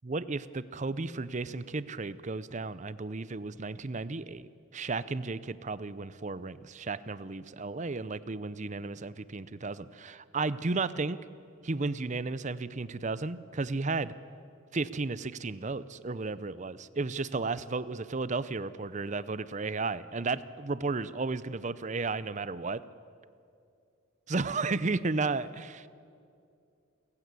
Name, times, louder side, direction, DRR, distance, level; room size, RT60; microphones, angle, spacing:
voice 1, 0.1-11.2 11.6-14.1 14.7-22.8 24.3-25.9, right 3 dB, 35° right, 16 dB, 0.6 m, -33 dB
29.0 x 15.5 x 8.2 m, 2.5 s
head